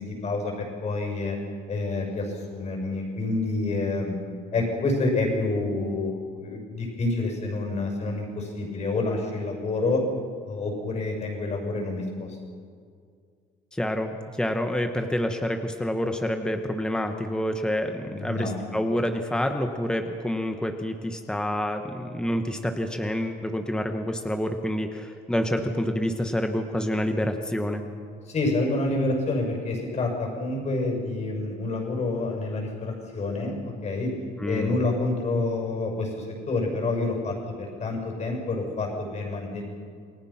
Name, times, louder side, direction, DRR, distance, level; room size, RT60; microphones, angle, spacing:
voice 1, 0.0-1.4 1.7-4.2 4.5-10.0 10.5-12.3 18.1-18.6 28.3-34.1 34.4-39.6, left 2 dB, 45° left, 1 dB, 7.0 m, -28 dB
voice 2, 13.7-27.8 34.4-34.8, equal, 5° left, 5 dB, 1.3 m, -28 dB
28.5 x 20.0 x 5.9 m, 2.2 s
cardioid pair, 110°, 17 cm